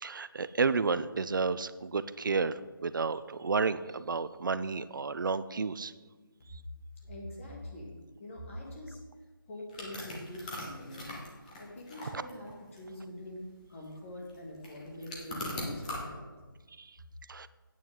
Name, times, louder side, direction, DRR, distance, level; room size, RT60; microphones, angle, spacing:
voice 1, 0.0-5.9 12.1-12.2 17.3-17.5, right 4 dB, 60° right, 14 dB, 0.5 m, -31 dB
voice 2, 7.0-7.9 8.2-9.0 9.5-11.2 11.6-13.4 13.7-16.3, left 1 dB, 35° left, -2 dB, 2.5 m, -44 dB
sound 1, 9.7-16.0, left 1 dB, 20° left, 1.5 m, -41 dB
9.4 x 9.0 x 3.7 m, 1.3 s
figure-of-eight pair, 165°, 12 cm